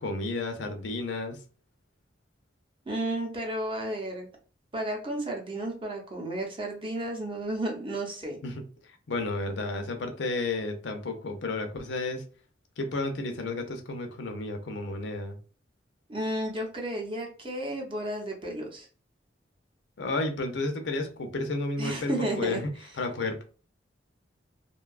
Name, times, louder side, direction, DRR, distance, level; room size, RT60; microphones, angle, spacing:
voice 1, 0.0-1.4 8.4-8.5 8.8-12.2 12.8-15.4 20.0-22.6 23.0-23.4, left 2 dB, 75° left, 5 dB, 0.5 m, -32 dB
voice 2, 2.9-4.3 4.7-8.4 16.1-18.9 21.8-22.6, right 1 dB, 30° right, 0 dB, 0.7 m, -32 dB
2.6 x 2.2 x 2.3 m, 0.38 s
head